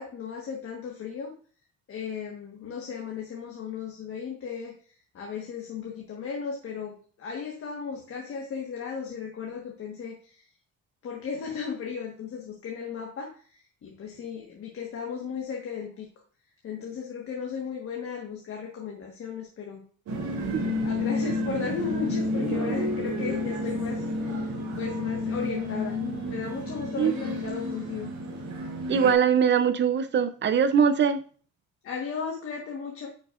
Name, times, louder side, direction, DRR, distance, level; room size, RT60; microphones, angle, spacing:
voice 1, 0.0-1.3 1.9-10.5 11.0-16.1 16.6-19.8 20.3-20.5 20.8-28.1 31.8-33.1, left 6 dB, 45° left, -1 dB, 1.5 m, -36 dB
sound 1, 20.1-29.1, left 1 dB, 55° right, 2.8 m, -30 dB
voice 2, 28.9-31.2, right 7 dB, 35° right, 11 dB, 0.6 m, -22 dB
9.1 x 6.3 x 2.5 m, 0.42 s
cardioid pair, 155°, 32 cm